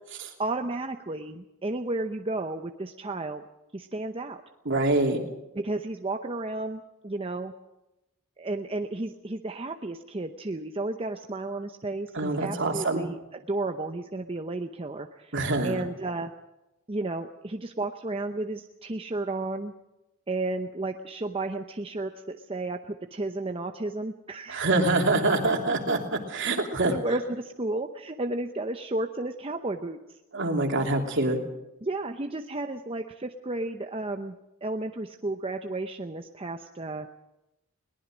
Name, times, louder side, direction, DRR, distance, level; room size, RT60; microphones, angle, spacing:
voice 1, 0.4-3.4 3.7-4.4 5.5-7.5 8.4-15.3 15.6-16.3 16.9-19.7 20.3-24.8 26.9-30.0 31.8-34.3 34.6-37.1, right 2 dB, 25° right, 5 dB, 0.8 m, -33 dB
voice 2, 4.6-5.2 12.1-13.1 15.3-15.8 24.5-26.9 30.3-31.4, right 2 dB, 60° right, 3 dB, 3.0 m, -25 dB
22.0 x 19.0 x 6.3 m, 0.96 s
head